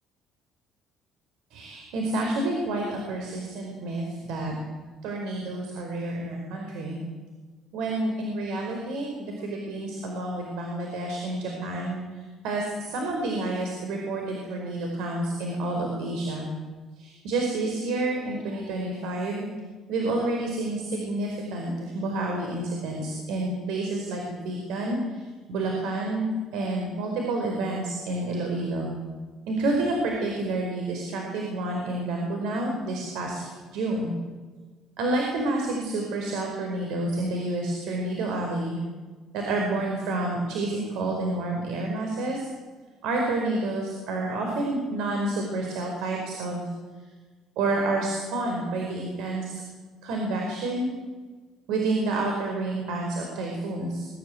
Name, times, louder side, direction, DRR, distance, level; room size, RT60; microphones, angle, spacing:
voice 1, 1.5-4.5 5.0-7.0 7.7-16.5 17.0-19.5 19.9-25.2 25.5-28.9 29.5-34.1 35.0-38.8 39.3-42.5 43.0-46.7 47.6-49.6 50.0-50.9 51.7-54.1, right 2 dB, 85° right, 1 dB, 4.8 m, -29 dB
23.0 x 15.5 x 9.3 m, 1.4 s
cardioid pair, 140°, 0 cm